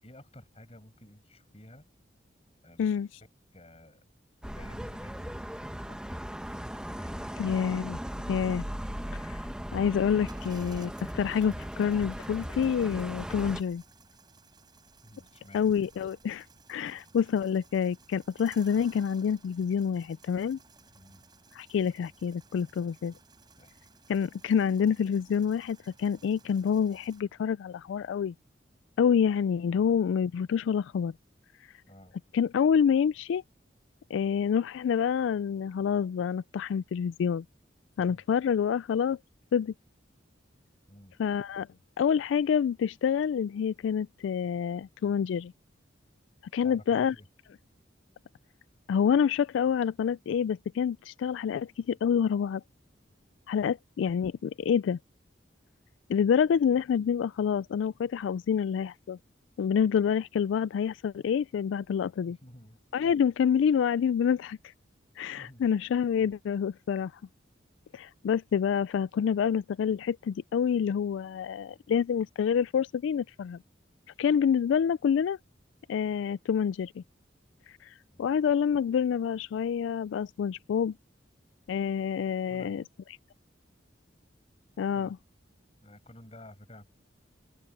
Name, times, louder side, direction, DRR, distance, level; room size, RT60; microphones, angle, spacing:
voice 1, 0.0-1.8 2.6-2.9 3.5-4.0 4.5-5.5 5.8-7.4 15.0-15.7 20.9-21.3 23.6-23.9 29.7-29.9 31.9-32.1 38.0-38.2 40.9-41.2 46.6-47.3 62.3-62.8 65.4-65.7 78.1-78.3 82.5-82.8 85.0-85.1 85.8-86.9, left 1 dB, 35° left, 6.9 m, -52 dB
sound 1, 4.4-13.6, equal, 5° right, 1.1 m, -38 dB
voice 2, 7.4-8.0 8.3-8.6 9.1-9.4 9.7-13.8 15.5-20.6 21.5-23.1 24.1-28.3 29.0-31.1 32.3-33.4 34.1-37.4 38.0-39.2 39.5-39.7 41.2-41.7 42.0-45.5 46.5-47.2 48.9-52.6 53.5-55.0 56.1-59.2 59.6-62.4 62.9-64.6 65.2-67.2 67.9-73.6 74.2-75.4 75.9-77.0 77.7-80.9 81.7-82.8 84.8-85.1, left 7 dB, 85° left, 0.3 m, -27 dB
sound 2, 10.3-27.2, right 4 dB, 25° right, 6.6 m, -58 dB
open air
head